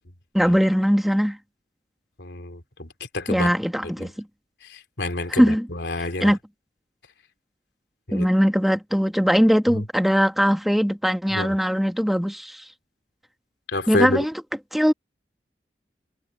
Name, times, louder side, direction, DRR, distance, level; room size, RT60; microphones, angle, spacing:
voice 1, 0.3-1.4 3.3-4.1 5.3-5.7 6.2-6.4 8.1-12.6 13.9-14.3 14.7-14.9, equal, ahead, 1.5 m, -20 dB
voice 2, 2.2-3.5 3.8-4.1 4.6-6.3 8.1-8.3 9.7-9.8 11.3-11.5 13.7-14.2, left 2 dB, 80° left, 3.0 m, -28 dB
head